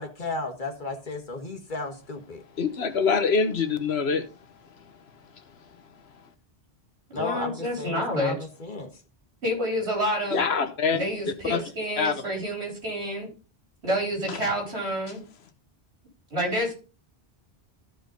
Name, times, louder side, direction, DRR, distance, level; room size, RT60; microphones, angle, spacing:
voice 1, 0.0-2.4 7.1-8.9, left 3 dB, 50° left, 1.7 m, -34 dB
voice 2, 2.6-4.2 10.3-11.0 11.5-11.6 12.0-12.1, left 5 dB, 75° left, 1.3 m, -24 dB
voice 3, 7.2-8.4 9.4-10.5 10.9-13.3 13.8-15.2 16.3-16.7, equal, 85° right, 4.5 m, -28 dB
14.5 x 5.2 x 3.9 m
omnidirectional pair, 1.1 m